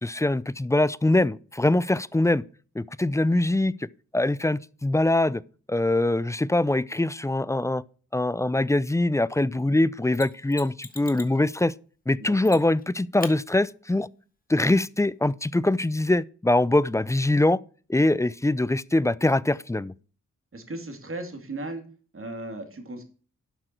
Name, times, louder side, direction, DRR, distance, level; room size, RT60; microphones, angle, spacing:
voice 1, 0.0-2.4 2.8-3.7 4.1-5.4 5.7-7.8 8.1-11.7 12.1-14.1 14.5-17.6 17.9-19.9, left 2 dB, 10° left, 0.4 m, -23 dB
Mechanisms, 10.1-11.4 12.4-12.8 13.2-13.4 16.1-16.2, left 3 dB, 30° left, 1.4 m, -40 dB
voice 2, 12.2-12.6 20.5-21.8 22.1-23.0, right 2 dB, 45° right, 2.4 m, -36 dB
11.5 x 6.0 x 4.5 m
cardioid pair, 75°, 31 cm